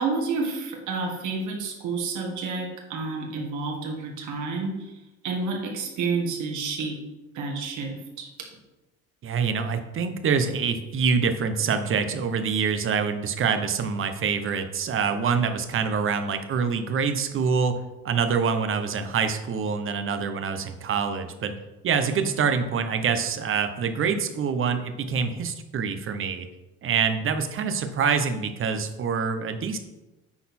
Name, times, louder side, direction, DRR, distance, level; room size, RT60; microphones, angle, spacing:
voice 1, 0.0-5.0 5.2-7.0 7.3-8.3, right 4 dB, 65° right, 1 dB, 1.9 m, -30 dB
voice 2, 9.2-17.8 18.0-21.5 21.8-26.5 26.8-29.8, right 6 dB, 40° right, 8 dB, 0.9 m, -25 dB
9.6 x 4.1 x 4.3 m, 1.0 s
cardioid pair, 125°, 33 cm